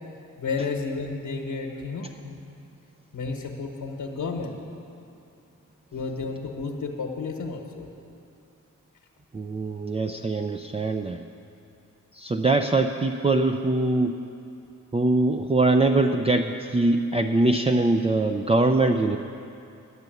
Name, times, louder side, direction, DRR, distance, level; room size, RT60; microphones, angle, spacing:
voice 1, 0.4-2.5 3.1-4.6 5.9-7.9, left 4 dB, 80° left, 1 dB, 1.2 m, -32 dB
voice 2, 9.3-11.2 12.1-14.2 14.9-19.2, right 2 dB, 20° right, 5 dB, 0.4 m, -22 dB
11.0 x 6.8 x 9.2 m, 2.6 s
cardioid pair, 60°, 32 cm